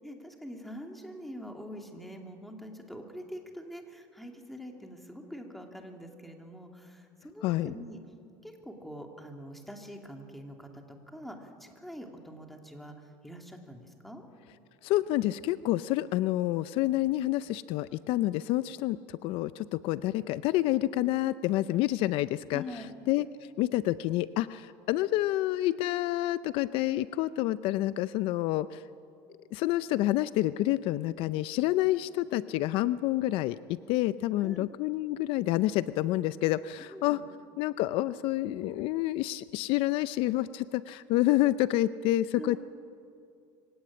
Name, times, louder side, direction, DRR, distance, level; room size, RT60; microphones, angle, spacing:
voice 1, 0.0-8.0 8.4-12.9 13.2-14.3 22.5-22.9 34.4-34.7 36.9-37.2 42.3-42.6, equal, ahead, 2 dB, 2.7 m, -44 dB
voice 2, 7.4-7.7 14.8-22.6 23.1-23.3 23.6-28.8 29.5-33.6 33.9-37.2 37.6-42.6, left 15 dB, 65° left, 15 dB, 0.5 m, -28 dB
24.0 x 17.5 x 8.7 m, 2.5 s
supercardioid pair, 125°, 10 cm